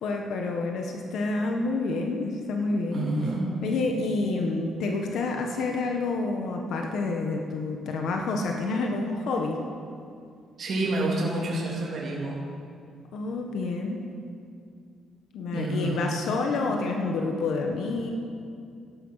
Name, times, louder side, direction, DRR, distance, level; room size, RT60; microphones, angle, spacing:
voice 1, 0.0-3.1 3.6-9.6 13.1-14.0 15.3-18.1, left 3 dB, 70° left, 2 dB, 1.3 m, -28 dB
voice 2, 2.9-3.5 10.6-12.4 15.5-16.0, right 2 dB, 45° right, -5 dB, 3.3 m, -28 dB
13.0 x 11.5 x 5.7 m, 2.3 s
cardioid pair, 135°, 0 cm